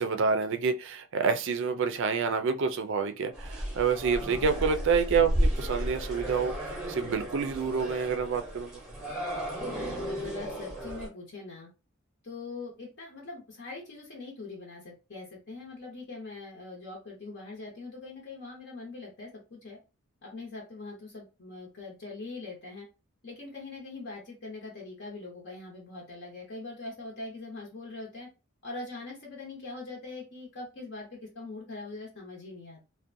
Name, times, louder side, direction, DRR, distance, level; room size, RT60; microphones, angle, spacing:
voice 1, 0.0-8.7, right 5 dB, 65° right, 0.4 m, -28 dB
sound 1, 3.3-11.1, equal, 5° right, 0.7 m, -33 dB
voice 2, 10.2-11.7 12.2-19.8 20.2-22.9 23.2-28.3 28.6-32.8, left 3 dB, 55° left, 0.8 m, -42 dB
2.5 x 2.1 x 2.6 m
head